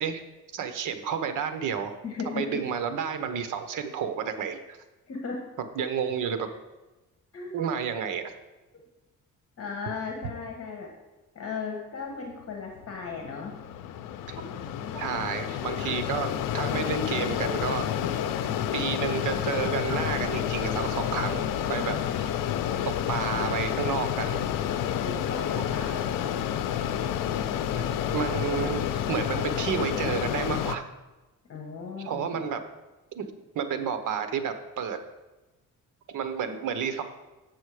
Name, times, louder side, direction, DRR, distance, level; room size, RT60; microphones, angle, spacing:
voice 1, 0.5-2.0 2.2-4.8 5.7-6.5 7.5-8.3 14.3-14.4 14.9-16.3 16.5-17.8 18.1-18.2 18.6-22.3 23.1-24.4 27.7-30.8 32.0-32.6 33.1-33.3 33.5-35.0 36.1-37.0, right 7 dB, 70° right, 9 dB, 1.0 m, -31 dB
voice 2, 2.0-2.6 5.1-5.5 7.3-7.5 9.6-10.9 11.3-13.5 15.8-15.9 22.7-22.8 24.8-26.3 31.5-32.5, left 5 dB, 45° left, 1 dB, 1.4 m, -36 dB
Mechanisms, 12.8-30.8, left 10 dB, 80° left, 0.6 m, -29 dB
8.4 x 6.2 x 4.9 m, 1.1 s
cardioid pair, 115°, 32 cm